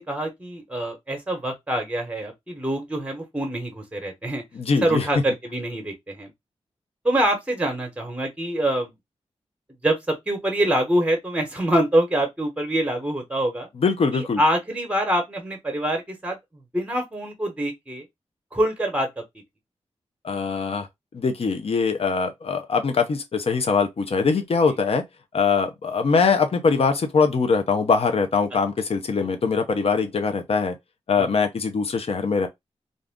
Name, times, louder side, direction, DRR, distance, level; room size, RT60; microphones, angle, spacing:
voice 1, 0.0-4.4 4.8-6.3 7.0-8.9 9.8-13.7 14.1-16.4 16.7-18.0 18.5-19.2 29.2-29.3, right 1 dB, 10° right, 1.1 m, -25 dB
voice 2, 4.5-5.1 13.8-14.4 20.2-20.9 21.1-25.0 25.3-30.8 31.1-32.5, left 5 dB, 60° left, 0.7 m, -22 dB
2.6 x 2.4 x 3.5 m
cardioid pair, 70°, 11 cm